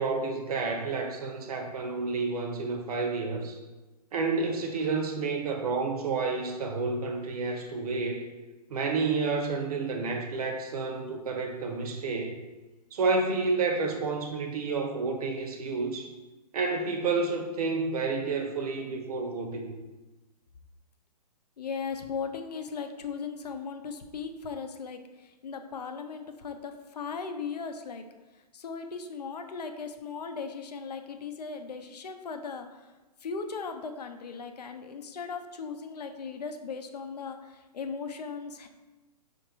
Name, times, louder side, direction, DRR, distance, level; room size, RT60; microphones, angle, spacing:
voice 1, 0.0-3.6 4.1-8.3 8.7-12.4 12.9-16.1 16.5-19.8, right 4 dB, 60° right, 3 dB, 0.7 m, -30 dB
voice 2, 21.6-28.0 28.5-32.9 33.2-38.7, left 5 dB, 75° left, 7 dB, 0.5 m, -38 dB
4.8 x 2.6 x 2.9 m, 1.1 s
hypercardioid pair, 130°, 21 cm